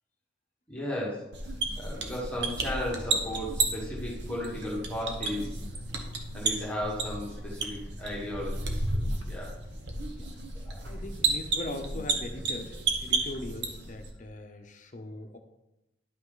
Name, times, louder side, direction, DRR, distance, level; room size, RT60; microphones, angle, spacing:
voice 1, 0.7-1.3 1.8-5.6 6.3-9.6 10.6-10.9 15.1-15.3, left 1 dB, 5° left, -5 dB, 1.6 m, -35 dB
sound 1, 1.3-14.1, right 3 dB, 60° right, 1.2 m, -32 dB
sound 2, 2.3-10.1, equal, 15° right, 0.5 m, -49 dB
voice 2, 10.8-15.4, left 1 dB, 40° left, 6 dB, 0.8 m, -40 dB
11.5 x 5.7 x 3.9 m, 0.92 s
head